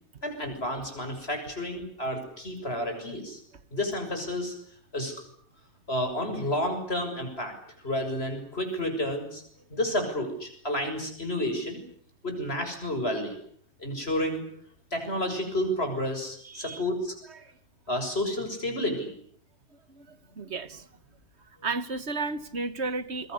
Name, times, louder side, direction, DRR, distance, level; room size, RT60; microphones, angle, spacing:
voice 1, 0.2-3.4 3.7-4.5 4.9-5.2 5.9-7.5 7.8-9.4 9.7-11.8 12.2-13.4 13.8-14.4 14.9-17.1 17.9-19.1, left 1 dB, 65° left, 7.2 m, -30 dB
voice 2, 16.4-16.8 17.3-17.5 19.7-20.9 21.6-23.3, right 3 dB, 75° right, 1.8 m, -34 dB
28.0 x 23.0 x 8.2 m
omnidirectional pair, 1.1 m